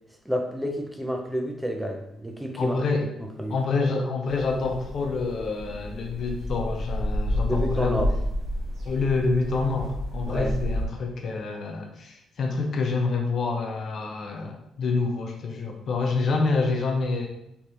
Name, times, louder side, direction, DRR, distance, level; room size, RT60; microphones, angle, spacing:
voice 1, 0.2-2.8 3.2-3.6 7.5-8.1 10.3-10.6, equal, 5° right, 2 dB, 0.6 m, -29 dB
voice 2, 2.6-3.1 3.5-8.0 8.8-17.3, left 4 dB, 60° left, 2 dB, 0.6 m, -27 dB
sound 1, 4.3-10.9, equal, 60° right, 1.2 m, -30 dB
3.3 x 3.1 x 2.9 m, 0.79 s
cardioid pair, 90°, 0 cm